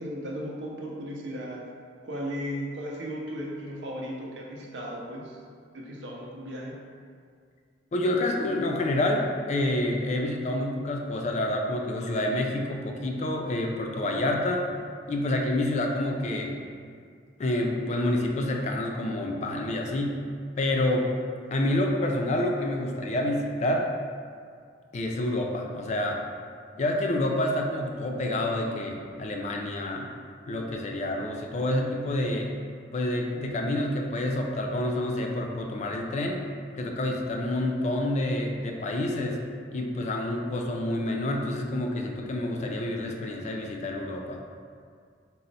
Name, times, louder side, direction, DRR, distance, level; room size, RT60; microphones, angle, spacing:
voice 1, 0.0-1.7 2.0-5.4 5.7-6.7, equal, 80° right, -2 dB, 0.6 m, -36 dB
voice 2, 7.9-14.7 15.1-16.6 17.4-20.2 20.6-21.1 21.5-23.9 24.9-26.2 26.8-30.1 30.5-32.5 32.9-36.4 36.7-39.4 39.7-44.4, left 1 dB, 40° left, 1 dB, 0.3 m, -28 dB
4.2 x 2.0 x 3.9 m, 2.2 s
head